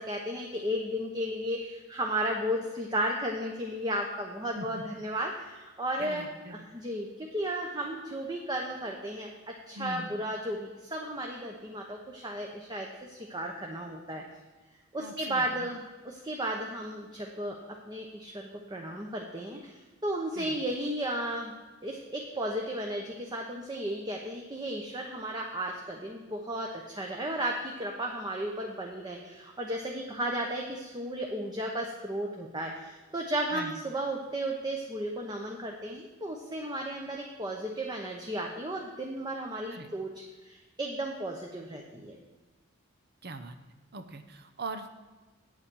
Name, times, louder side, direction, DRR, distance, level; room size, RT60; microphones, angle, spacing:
voice 1, 0.0-6.2 6.5-9.3 9.7-14.2 14.9-17.6 17.9-21.5 21.8-42.2, right 1 dB, 20° right, 0 dB, 1.0 m, -34 dB
voice 2, 6.0-6.7 9.7-10.1 15.0-15.7 20.4-20.6 33.5-33.7 39.7-39.9 43.2-43.6 43.9-45.0, right 2 dB, 50° right, 8 dB, 0.9 m, -41 dB
8.7 x 8.6 x 6.3 m, 1.3 s
head